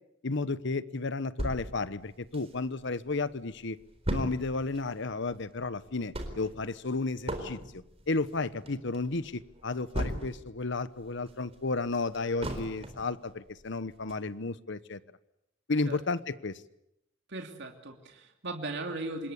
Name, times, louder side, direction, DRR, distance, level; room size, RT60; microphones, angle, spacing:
voice 1, 0.2-3.8 4.1-7.6 8.1-15.0 15.7-16.6, left 3 dB, 65° left, 15 dB, 1.1 m, -33 dB
sound 1, 1.4-2.9 3.3-3.4 3.6-10.6 11.0-13.1 13.6-13.7 14.1-14.2, equal, 30° right, 4.1 m, -37 dB
voice 2, 17.3-19.3, right 2 dB, 65° right, 3 dB, 2.9 m, -38 dB
26.5 x 21.5 x 8.3 m, 0.83 s
head